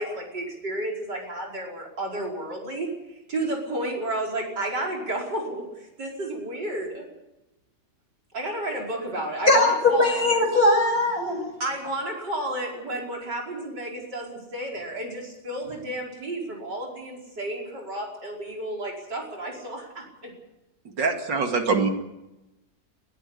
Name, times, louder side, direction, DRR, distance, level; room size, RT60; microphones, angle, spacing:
voice 1, 0.0-7.0 8.3-10.2 11.6-20.3, right 1 dB, 70° right, -1 dB, 5.7 m, -32 dB
voice 2, 9.5-11.5, left 2 dB, 55° left, 1 dB, 7.2 m, -20 dB
voice 3, 21.0-21.9, right 4 dB, 90° right, 4 dB, 3.1 m, -23 dB
21.5 x 14.0 x 10.0 m, 0.96 s
omnidirectional pair, 1.9 m